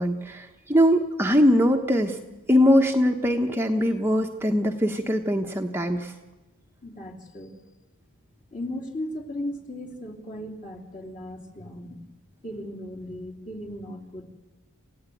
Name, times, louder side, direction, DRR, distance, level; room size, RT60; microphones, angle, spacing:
voice 1, 0.0-2.2 2.5-6.1, equal, 10° right, 3 dB, 1.0 m, -22 dB
voice 2, 6.8-7.5 8.5-12.0 12.4-14.2, left 1 dB, 35° left, 0 dB, 3.2 m, -36 dB
28.0 x 16.0 x 9.3 m, 1.1 s
head